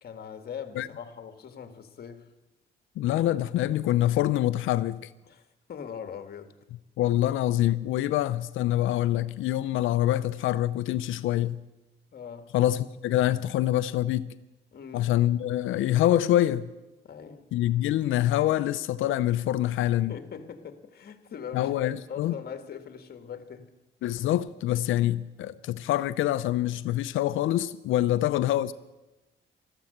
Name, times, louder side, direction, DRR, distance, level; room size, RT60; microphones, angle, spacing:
voice 1, 0.0-2.3 5.2-6.5 12.1-12.5 14.7-15.1 17.0-17.4 20.0-23.7 28.1-28.3, left 7 dB, 50° left, 1.7 m, -41 dB
voice 2, 3.0-5.1 7.0-11.6 12.5-14.3 14.9-16.7 17.5-20.1 21.5-22.3 24.0-28.7, left 13 dB, 80° left, 0.5 m, -25 dB
14.0 x 13.0 x 7.9 m
cardioid pair, 90°, 20 cm